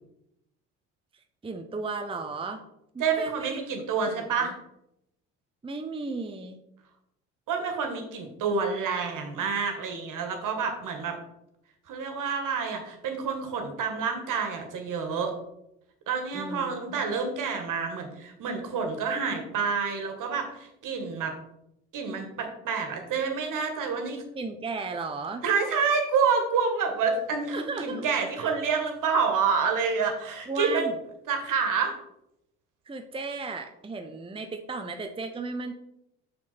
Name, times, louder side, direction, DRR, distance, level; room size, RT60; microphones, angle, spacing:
voice 1, 1.1-2.6 2.9-3.6 4.1-4.5 5.6-6.6 16.3-17.2 24.3-25.5 27.5-28.0 28.4-28.5 30.5-31.0 32.9-35.7, right 3 dB, 15° right, 5 dB, 0.8 m, -35 dB
voice 2, 3.0-4.5 7.5-11.2 11.9-15.3 16.1-21.3 21.9-24.2 25.4-30.9 31.3-31.9, right 5 dB, 55° right, 4 dB, 1.9 m, -28 dB
6.1 x 6.1 x 4.3 m, 0.83 s
hypercardioid pair, 60°, 37 cm